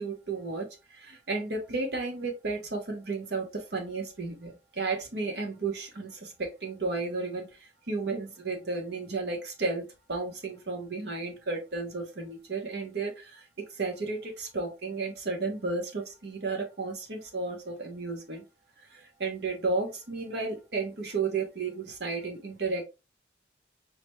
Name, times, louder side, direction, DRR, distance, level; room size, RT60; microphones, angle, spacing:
voice 1, 0.0-9.8 10.1-18.4 18.9-22.8, right 3 dB, 65° right, 3 dB, 0.9 m, -33 dB
5.7 x 2.2 x 3.0 m, 0.27 s
head